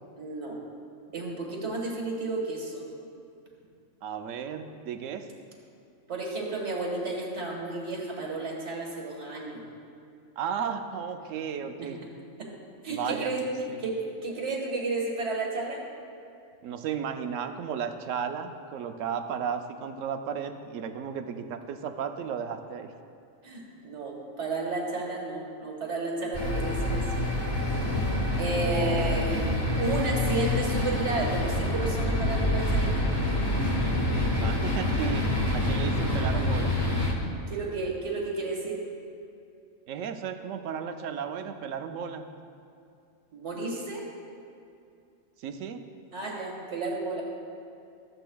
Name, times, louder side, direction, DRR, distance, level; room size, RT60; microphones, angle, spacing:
voice 1, 0.2-0.6 1.1-2.8 6.1-9.6 11.8-11.9 12.4-12.5 12.8-14.0 14.2-15.8 23.4-27.0 28.4-29.5 29.8-33.0 37.5-38.8 43.3-44.0 46.1-47.2, right 3 dB, 60° right, -2 dB, 1.8 m, -32 dB
voice 2, 4.0-5.3 10.4-12.0 12.9-13.3 13.7-13.8 16.6-22.9 28.5-29.4 34.3-35.3 35.5-36.8 39.9-42.3 45.4-45.8, right 7 dB, 75° right, 7 dB, 0.9 m, -34 dB
sound 1, 26.3-37.1, left 1 dB, 20° left, 0.9 m, -27 dB
13.5 x 7.7 x 2.3 m, 2.5 s
omnidirectional pair, 1.4 m